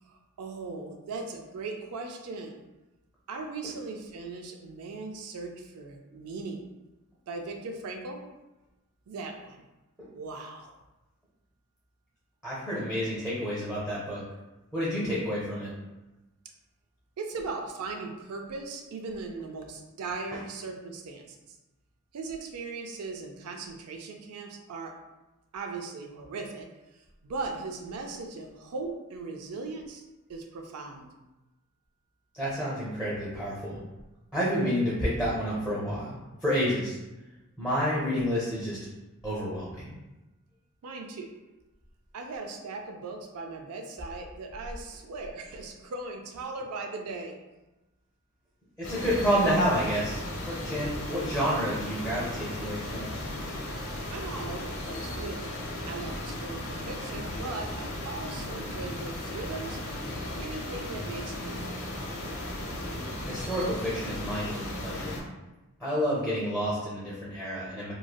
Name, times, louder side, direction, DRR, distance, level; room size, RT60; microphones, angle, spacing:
voice 1, 0.0-2.6 3.3-6.6 7.3-8.2 9.1-9.7 10.1-10.8 17.2-21.6 22.1-24.9 25.5-26.7 26.9-30.0 30.3-31.1 40.8-41.3 42.1-47.4 54.1-55.5 55.8-59.8 60.1-61.8, right 3 dB, 80° right, 3 dB, 0.4 m, -38 dB
voice 2, 12.4-14.2 14.7-15.7 20.3-20.4 32.3-33.8 34.3-37.0 37.6-38.8 39.2-40.0 48.8-53.2 63.3-65.2 65.8-67.9, equal, 5° right, -7 dB, 0.6 m, -29 dB
sound 1, 48.8-65.2, left 1 dB, 85° left, 0.7 m, -36 dB
3.1 x 2.5 x 2.2 m, 1.0 s
head